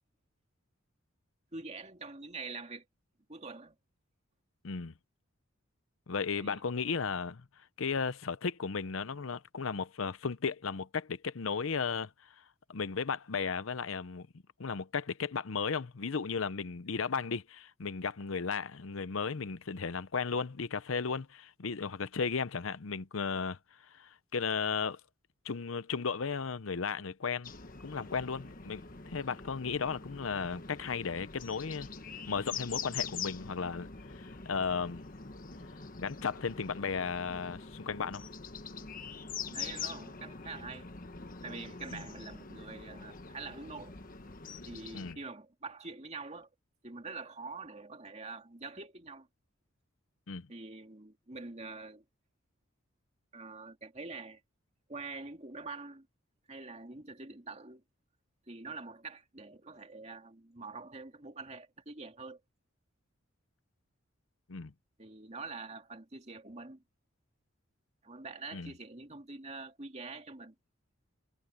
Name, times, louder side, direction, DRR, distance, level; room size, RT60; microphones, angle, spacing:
voice 1, 1.5-2.9 3.3-3.8 6.4-6.6 38.8-38.9 39.5-40.9 41.4-44.0 44.7-46.5 46.8-49.3 50.5-52.0 53.3-54.4 54.9-56.1 56.5-57.8 58.5-62.4 65.0-66.8 68.0-70.5, right 3 dB, 30° right, 2.5 m, -45 dB
voice 2, 6.1-7.4 7.8-12.1 12.7-14.3 14.6-23.6 23.9-25.0 25.4-27.5 27.8-31.9 32.3-33.9 34.2-35.0 36.0-38.3 41.9-42.0 44.9-45.2 50.3-50.5 64.5-64.7 68.5-68.7, left 5 dB, 75° left, 0.7 m, -35 dB
sound 1, 27.4-45.1, left 5 dB, 40° left, 1.3 m, -44 dB
head